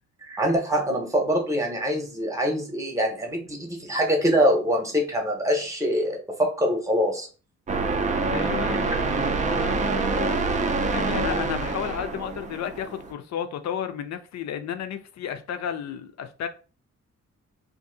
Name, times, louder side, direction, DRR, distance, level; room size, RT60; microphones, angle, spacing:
voice 1, 0.2-7.3, equal, 10° right, 0.8 m, -24 dB
sound 1, 7.7-13.1, right 3 dB, 25° right, 0.4 m, -26 dB
voice 2, 8.3-10.4 10.9-16.5, left 9 dB, 65° left, 0.5 m, -33 dB
2.6 x 2.6 x 3.8 m
wide cardioid pair, 150°, 29 cm